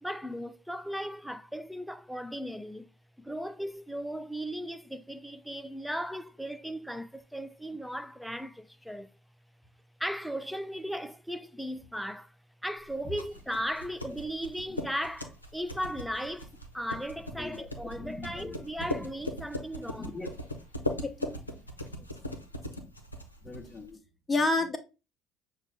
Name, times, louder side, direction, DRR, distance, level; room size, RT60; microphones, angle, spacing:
voice 1, 0.0-2.9 3.2-9.1 10.0-12.3 12.6-16.5 16.7-20.2, equal, ahead, 0.4 m, -37 dB
sound 1, 12.9-23.9, left 1 dB, 90° left, 0.6 m, -39 dB
voice 2, 17.4-19.1 20.0-20.3 21.0-21.4 23.4-24.0 24.3-24.8, left 2 dB, 15° left, 0.8 m, -33 dB
6.4 x 2.3 x 3.5 m
figure-of-eight pair, 60°, 0 cm